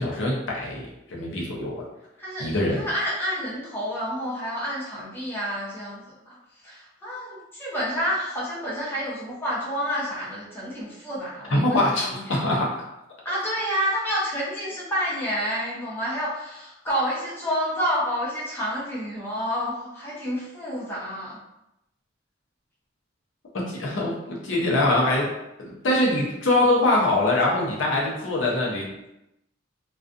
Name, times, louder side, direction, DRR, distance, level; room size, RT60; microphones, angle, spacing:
voice 1, 0.0-1.9 2.4-2.8 11.5-12.8 23.5-25.3 25.6-28.9, left 1 dB, 75° left, -4 dB, 0.6 m, -23 dB
voice 2, 2.2-12.4 13.2-21.4, equal, 10° left, -8 dB, 0.7 m, -29 dB
2.4 x 2.3 x 2.5 m, 0.88 s
head